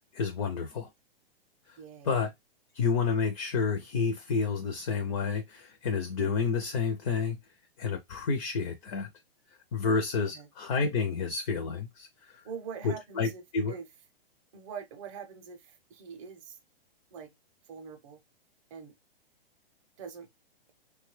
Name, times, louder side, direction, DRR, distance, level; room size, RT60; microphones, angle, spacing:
voice 1, 0.1-0.9 2.0-2.3 2.7-7.4 7.8-9.1 9.7-12.4 12.8-13.8, left 5 dB, 35° left, 0.4 m, -30 dB
voice 2, 1.8-2.2 10.3-10.5 12.4-13.9 14.5-16.6 17.1-17.3 17.7-18.2 18.7-18.9 20.0-20.3, right 6 dB, 35° right, 0.6 m, -44 dB
3.0 x 2.2 x 3.0 m
hypercardioid pair, 155°, 30 cm